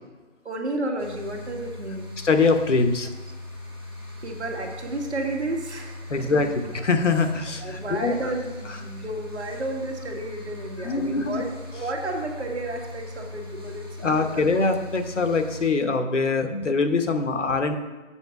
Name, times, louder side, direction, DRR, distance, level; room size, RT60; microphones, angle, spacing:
voice 1, 0.4-2.1 4.2-6.6 7.6-14.3, right 2 dB, 55° right, 2 dB, 1.8 m, -32 dB
sound 1, 1.0-15.7, left 2 dB, 20° right, 0.9 m, -39 dB
voice 2, 2.2-3.1 6.1-6.5 6.7-8.2 10.8-11.4 14.0-17.7, left 4 dB, 65° left, 6 dB, 1.1 m, -23 dB
7.4 x 5.2 x 6.8 m, 1.2 s
figure-of-eight pair, 175°, 39 cm